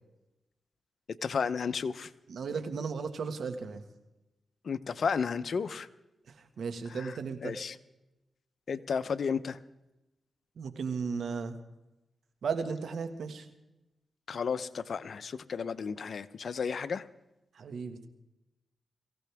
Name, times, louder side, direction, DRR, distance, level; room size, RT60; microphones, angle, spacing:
voice 1, 1.2-2.1 4.6-5.9 7.4-7.7 8.7-9.6 14.3-17.0, left 6 dB, 65° left, 13 dB, 0.8 m, -32 dB
voice 2, 2.3-3.8 6.3-7.6 10.6-11.6 12.4-13.5 17.5-18.1, right 5 dB, 75° right, 7 dB, 1.8 m, -35 dB
23.5 x 16.0 x 3.6 m, 0.96 s
cardioid pair, 60°, 0 cm